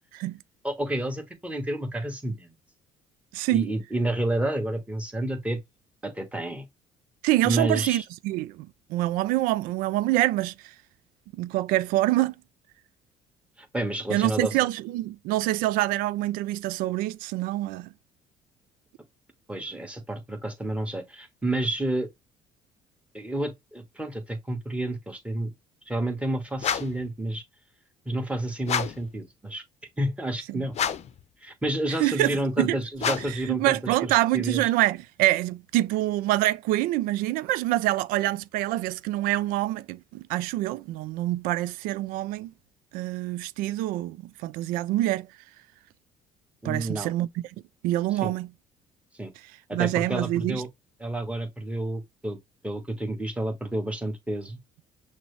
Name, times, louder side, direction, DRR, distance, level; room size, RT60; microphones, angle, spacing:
voice 1, 0.6-2.5 3.5-5.6 6.0-6.7 7.4-8.0 13.6-14.6 19.5-22.1 23.1-25.5 25.9-27.4 28.0-29.6 30.0-30.7 31.4-34.6 46.6-47.1 48.2-48.3 49.2-49.3 49.7-50.7 51.0-52.4 52.6-54.6, right 1 dB, 10° right, 1.4 m, -30 dB
voice 2, 3.3-3.7 7.2-10.7 11.3-12.3 14.1-17.9 30.5-30.7 32.0-42.5 42.9-45.3 46.6-47.4 47.8-48.5 49.7-50.6, right 16 dB, 75° right, 0.4 m, -26 dB
sound 1, 26.6-27.1 28.6-29.1 30.7-31.2 33.0-33.5, left 8 dB, 50° left, 0.6 m, -29 dB
6.0 x 2.1 x 3.3 m
supercardioid pair, 70°, 15 cm